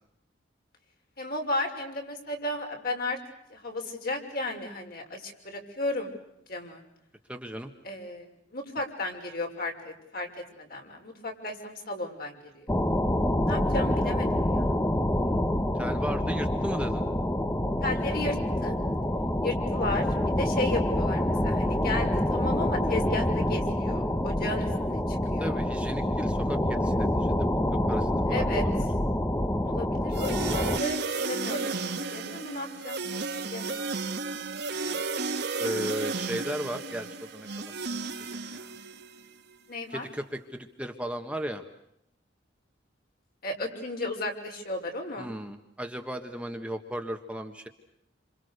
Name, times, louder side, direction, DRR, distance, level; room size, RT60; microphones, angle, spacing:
voice 1, 1.2-3.2 3.5-6.1 6.5-6.8 7.8-10.3 10.5-12.7 13.4-14.7 17.8-18.7 19.4-25.6 28.3-28.6 29.6-31.0 31.3-33.0 33.5-33.9 39.7-40.1 43.4-45.3, left 2 dB, 55° left, 2 dB, 6.0 m, -34 dB
voice 2, 7.3-7.7 15.2-17.0 25.4-27.5 27.9-28.8 35.6-37.7 38.2-38.7 39.9-41.6 45.2-47.7, equal, 5° right, 4 dB, 1.5 m, -36 dB
sound 1, 12.7-30.8, left 1 dB, 15° left, 1.2 m, -27 dB
sound 2, 30.1-39.2, right 4 dB, 60° right, 1.9 m, -33 dB
29.0 x 27.0 x 6.7 m, 0.77 s
head